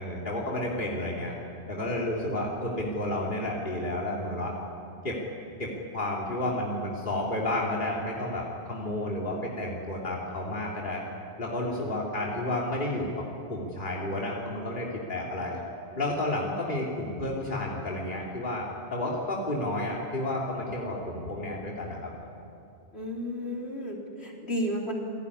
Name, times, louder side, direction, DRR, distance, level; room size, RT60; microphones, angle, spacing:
voice 1, 0.0-1.3 1.7-4.5 5.0-5.2 5.6-11.0 11.4-13.1 13.5-15.6 15.9-22.1, left 1 dB, 45° left, -3 dB, 3.2 m, -31 dB
voice 2, 22.9-24.9, equal, 65° left, -1 dB, 4.1 m, -32 dB
28.0 x 18.5 x 9.9 m, 2.7 s
omnidirectional pair, 1.2 m